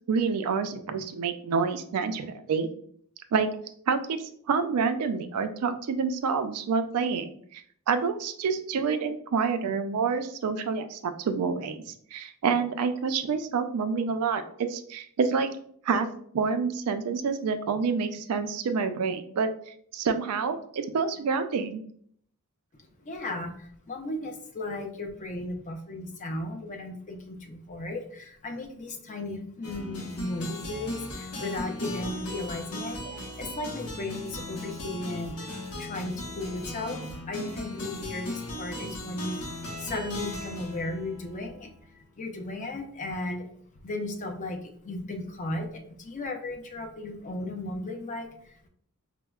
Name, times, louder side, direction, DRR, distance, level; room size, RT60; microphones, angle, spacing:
voice 1, 0.1-2.7 3.3-3.5 3.9-4.2 4.5-7.6 7.9-15.5 15.8-16.1 16.3-19.5 19.9-21.8 33.1-33.2, right 5 dB, 85° right, 9 dB, 0.4 m, -28 dB
voice 2, 22.7-35.5 35.8-43.5 43.8-48.7, left 2 dB, 35° left, 4 dB, 0.5 m, -35 dB
sound 1, 29.6-41.9, left 1 dB, 80° left, 0.8 m, -38 dB
4.4 x 2.0 x 2.3 m, 0.62 s
head